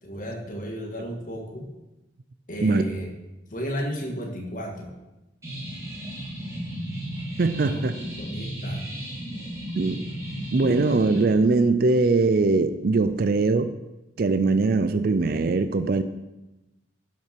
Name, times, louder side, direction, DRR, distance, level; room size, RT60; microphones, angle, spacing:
voice 1, 0.0-1.7 2.5-3.1 3.5-4.9 7.6-7.8 8.2-8.8, equal, 40° left, 1 dB, 1.7 m, -33 dB
sound 1, 5.4-11.2, right 1 dB, 15° right, 2.4 m, -34 dB
voice 2, 7.4-7.9 9.8-10.0 10.5-13.7 14.2-16.0, right 3 dB, 50° right, 11 dB, 0.4 m, -21 dB
11.0 x 5.9 x 5.9 m, 1.0 s
head